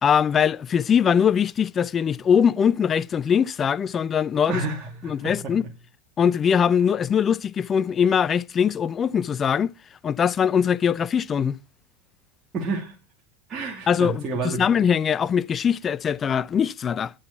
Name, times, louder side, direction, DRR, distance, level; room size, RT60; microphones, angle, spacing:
voice 1, 0.0-4.6 5.0-5.7 6.2-9.7 10.0-11.6 13.9-17.1, left 7 dB, 30° left, 0.5 m, -22 dB
voice 2, 4.5-5.5 12.5-12.9 13.5-14.7, right 3 dB, 35° right, 2.6 m, -30 dB
10.0 x 5.9 x 5.7 m
hypercardioid pair, 85°, 0 cm